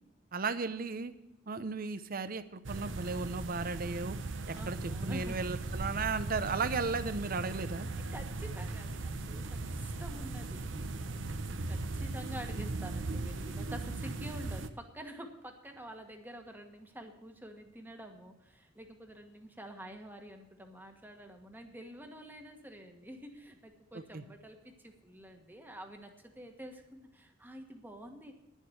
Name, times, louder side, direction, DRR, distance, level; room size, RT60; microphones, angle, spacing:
voice 1, 0.3-1.1 1.5-4.2 4.5-7.9 24.1-24.2, right 4 dB, 50° right, 13 dB, 0.7 m, -35 dB
sound 1, 2.6-14.7, right 2 dB, 75° right, 0.8 m, -38 dB
voice 2, 4.6-5.4 8.0-28.4, equal, 10° right, 4 dB, 1.4 m, -48 dB
10.5 x 7.4 x 7.9 m, 0.94 s
head